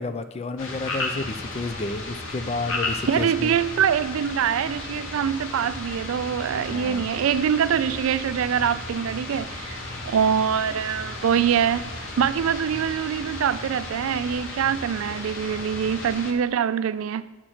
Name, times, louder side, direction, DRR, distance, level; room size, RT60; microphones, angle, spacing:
voice 1, 0.0-3.5 6.7-7.1, left 3 dB, 30° left, 0.4 m, -31 dB
sound 1, 0.6-16.3, left 2 dB, 70° left, 1.1 m, -34 dB
voice 2, 3.1-17.4, right 8 dB, 75° right, 0.3 m, -24 dB
7.5 x 6.3 x 4.3 m
head